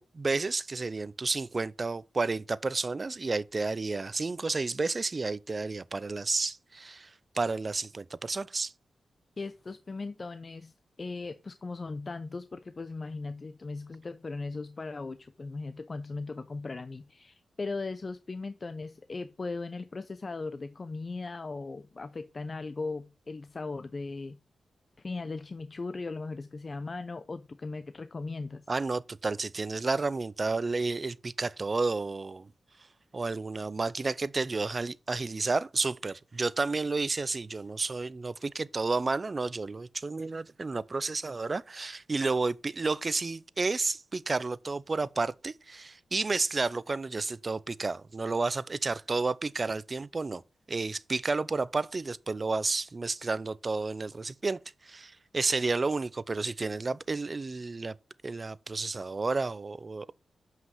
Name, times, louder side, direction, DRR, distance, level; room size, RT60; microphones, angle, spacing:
voice 1, 0.0-7.1 7.3-8.7 28.7-32.5 33.1-50.4 50.7-57.9 58.2-60.1, right 3 dB, 35° right, 0.5 m, -31 dB
voice 2, 9.4-24.4 25.0-28.7, left 3 dB, 40° left, 0.6 m, -38 dB
7.5 x 5.8 x 6.1 m
cardioid pair, 80°, 0 cm